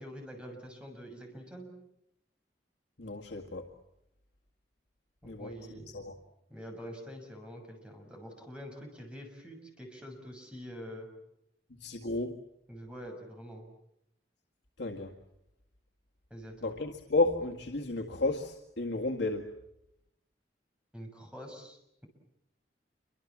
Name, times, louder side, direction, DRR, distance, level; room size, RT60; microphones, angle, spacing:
voice 1, 0.0-1.7 5.2-6.1 6.5-11.1 12.7-13.7 16.3-16.7 20.9-22.1, equal, 5° right, 2 dB, 6.5 m, -46 dB
voice 2, 3.0-3.7 5.2-5.5 5.9-6.1 11.8-12.4 14.8-15.1 16.6-19.5, left 2 dB, 85° left, 2 dB, 2.0 m, -32 dB
28.5 x 25.0 x 7.4 m, 0.81 s
head